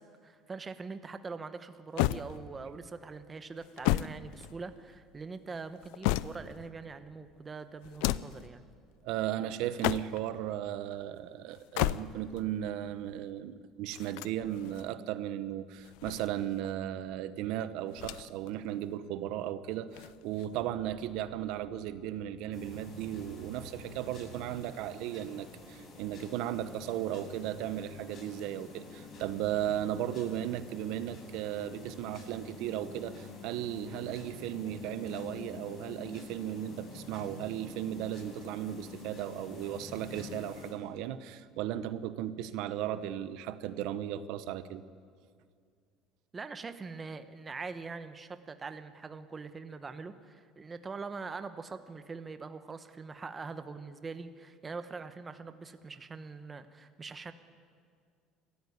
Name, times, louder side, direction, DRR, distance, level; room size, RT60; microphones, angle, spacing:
voice 1, 0.0-8.6 46.3-57.3, right 4 dB, 20° right, 10 dB, 1.0 m, -43 dB
sound 1, 2.0-2.8 3.6-5.0 5.6-6.7 7.8-8.5 9.6-10.4 11.5-12.4 13.9-14.9 15.8-16.7 17.9-18.5 18.8-18.9 19.9-20.7, left 16 dB, 85° left, 0.5 m, -34 dB
voice 2, 9.0-44.8, right 11 dB, 70° right, 12 dB, 1.0 m, -36 dB
sound 2, 22.5-40.7, left 3 dB, 40° left, 7.1 m, -48 dB
25.5 x 14.0 x 9.8 m, 2.1 s
cardioid pair, 150°, 0 cm